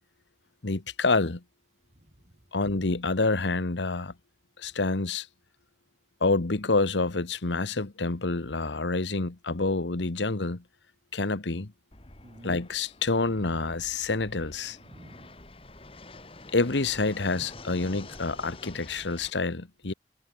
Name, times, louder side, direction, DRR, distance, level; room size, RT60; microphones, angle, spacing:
voice 1, 0.6-1.4 2.5-4.1 4.6-5.3 6.2-10.6 11.1-11.7 12.4-14.8 16.5-19.9, left 3 dB, 90° left, 1.3 m, -27 dB
voice 2, 1.9-2.4 12.2-12.6 14.8-15.4 19.9-20.0, right 1 dB, 40° right, 2.2 m, -51 dB
Fixed-wing aircraft airplane, 11.9-19.3, left 2 dB, 30° left, 2.5 m, -48 dB
head